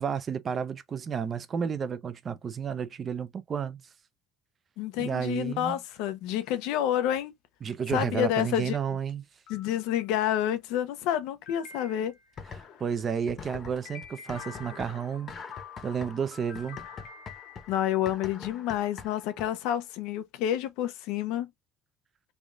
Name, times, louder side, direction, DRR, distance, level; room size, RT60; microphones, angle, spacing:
voice 1, 0.0-3.8 5.0-5.8 7.6-9.2 12.6-15.3 15.8-16.8, right 7 dB, 30° right, 0.5 m, -31 dB
voice 2, 4.8-7.3 7.9-9.0 9.5-12.1 17.7-21.5, left 11 dB, 90° left, 0.7 m, -29 dB
sound 1, 5.4-5.8 6.4-6.6 7.2-7.3 7.7-7.8 8.5-8.6 9.1-9.2 9.5-10.3 11.5-12.4 13.9-18.1, left 7 dB, 75° left, 1.5 m, -48 dB
sound 2, 12.4-13.0 13.3-19.7, left 6 dB, 35° left, 0.9 m, -44 dB
3.4 x 2.4 x 3.7 m
cardioid pair, 140°, 0 cm